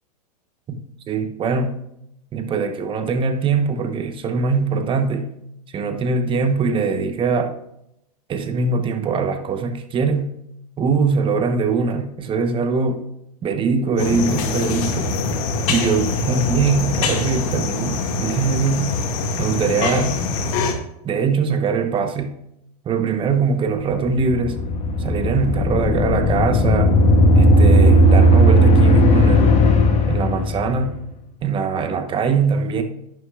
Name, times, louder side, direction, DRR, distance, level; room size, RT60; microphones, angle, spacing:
voice 1, 1.1-1.8 2.3-5.3 5.7-7.5 8.3-10.3 10.8-13.0 13.4-15.1 15.7-19.0 19.4-20.2 21.0-22.4 22.8-24.6 25.0-27.0 27.3-29.6 30.1-31.0 31.4-32.8, right 5 dB, 25° right, 1.1 m, -22 dB
sound 1, 14.0-20.7, left 3 dB, 55° left, 2.1 m, -24 dB
sound 2, 24.0-30.9, equal, 35° left, 1.8 m, -15 dB
11.0 x 9.7 x 2.5 m
hypercardioid pair, 120°, 20 cm